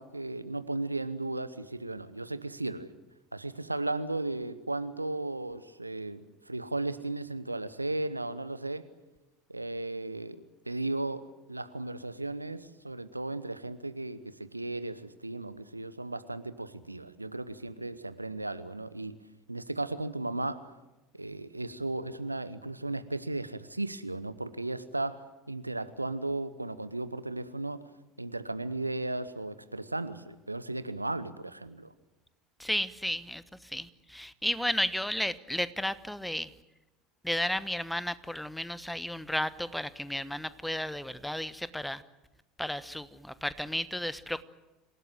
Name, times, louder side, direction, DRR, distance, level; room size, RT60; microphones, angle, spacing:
voice 1, 0.0-2.9 3.3-8.9 9.5-19.2 19.5-20.8 21.1-27.8 28.2-31.9, right 2 dB, 85° right, 14 dB, 0.9 m, -35 dB
voice 2, 32.6-33.4 33.7-36.5 37.2-42.0 42.6-44.4, left 1 dB, 5° left, 16 dB, 1.1 m, -33 dB
27.0 x 17.0 x 9.2 m, 1.1 s
figure-of-eight pair, 70°, 0 cm